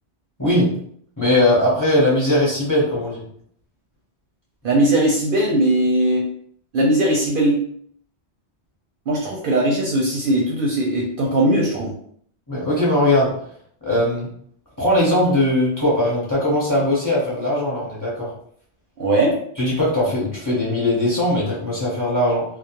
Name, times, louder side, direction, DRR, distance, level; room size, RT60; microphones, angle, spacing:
voice 1, 1.2-3.2 12.5-13.3 13.8-14.3 14.8-18.3 19.6-22.4, left 1 dB, 20° left, -6 dB, 0.8 m, -19 dB
voice 2, 4.6-6.2 6.7-7.6 9.1-11.9 19.0-19.3, right 1 dB, 60° right, -3 dB, 0.6 m, -19 dB
2.3 x 2.1 x 2.9 m, 0.63 s
omnidirectional pair, 1.2 m